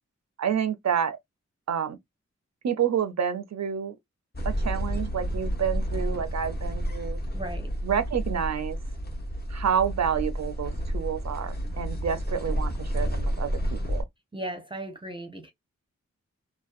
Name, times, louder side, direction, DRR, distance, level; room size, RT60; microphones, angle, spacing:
voice 1, 0.4-1.2 1.7-2.0 2.6-3.9 4.4-7.2 7.8-8.8 9.5-14.1, right 8 dB, 65° right, 0.4 m, -29 dB
sound 1, 4.3-14.0, equal, 35° left, 0.8 m, -30 dB
voice 2, 7.3-7.8 14.3-15.5, right 1 dB, 15° right, 0.6 m, -36 dB
2.5 x 2.1 x 2.4 m
wide cardioid pair, 55°, 29 cm